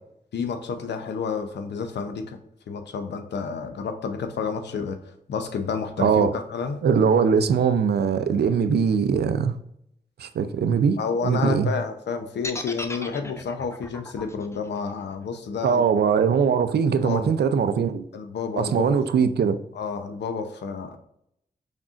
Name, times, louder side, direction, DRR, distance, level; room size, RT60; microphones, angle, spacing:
voice 1, 0.3-2.4 2.7-6.8 11.0-15.8 17.0-17.3 18.1-19.0 19.7-21.0, left 5 dB, 80° left, 7 dB, 0.6 m, -30 dB
voice 2, 6.0-6.3 6.8-9.6 10.2-11.7 15.6-18.0 18.6-19.6, right 6 dB, 70° right, 11 dB, 0.5 m, -21 dB
sound 1, 12.4-16.5, left 2 dB, 15° left, 0.6 m, -37 dB
5.2 x 3.7 x 2.4 m, 0.74 s
cardioid pair, 50°, 18 cm